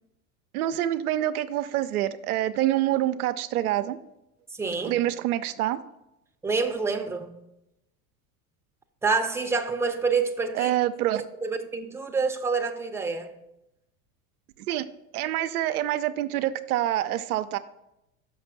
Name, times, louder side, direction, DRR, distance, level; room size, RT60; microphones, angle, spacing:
voice 1, 0.5-4.0 4.8-5.8 10.5-11.2 14.7-14.9 15.1-17.6, right 13 dB, 80° right, 0.6 m, -26 dB
voice 2, 4.5-4.9 6.4-7.4 9.0-10.8 11.1-13.4, right 4 dB, 5° right, 0.7 m, -27 dB
6.1 x 5.8 x 5.8 m
hypercardioid pair, 90°, 44 cm